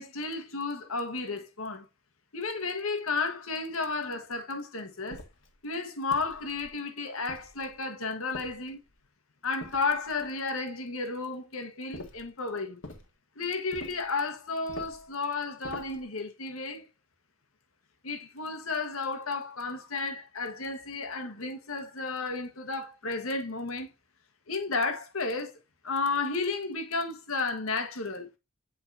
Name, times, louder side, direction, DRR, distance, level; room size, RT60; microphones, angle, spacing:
voice 1, 0.0-1.8 2.3-5.2 5.6-8.8 9.4-12.8 13.3-16.9 18.0-23.9 24.5-25.5 25.8-28.3, left 3 dB, 85° left, 1.4 m, -33 dB
sound 1, 5.1-5.5 6.1-6.8 7.3-7.8 8.3-9.0 9.6-10.3 11.9-12.3 12.8-13.1 13.7-14.1 14.7-15.1 15.6-16.1, left 1 dB, 60° left, 1.6 m, -45 dB
8.2 x 4.9 x 2.7 m
head